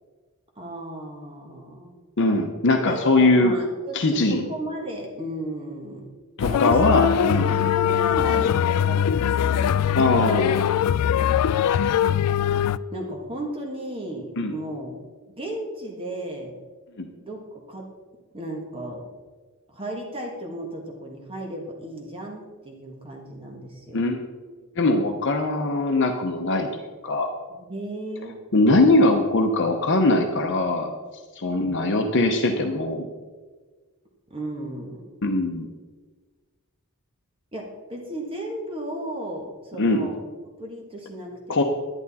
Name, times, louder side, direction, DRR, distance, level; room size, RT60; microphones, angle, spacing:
voice 1, 0.5-2.0 2.9-6.1 6.5-6.8 7.1-8.5 8.8-10.5 11.1-11.3 12.9-15.0 15.3-16.6 17.2-17.9 18.3-19.0 19.7-24.0 27.5-28.3 31.6-31.9 34.3-35.0 37.5-40.2 40.6-41.6, right 1 dB, 25° right, 0 dB, 1.5 m, -35 dB
voice 2, 2.2-3.5 3.9-4.4 6.4-7.5 10.0-10.7 14.4-14.5 17.0-17.1 23.9-24.2 24.8-26.7 27.0-27.3 28.5-30.9 31.4-33.1 35.2-35.7 39.8-40.0 41.5-41.6, left 2 dB, 55° left, 4 dB, 0.8 m, -21 dB
sound 1, 6.4-12.8, left 9 dB, 90° left, 0.3 m, -22 dB
11.0 x 11.0 x 4.1 m, 1.4 s
head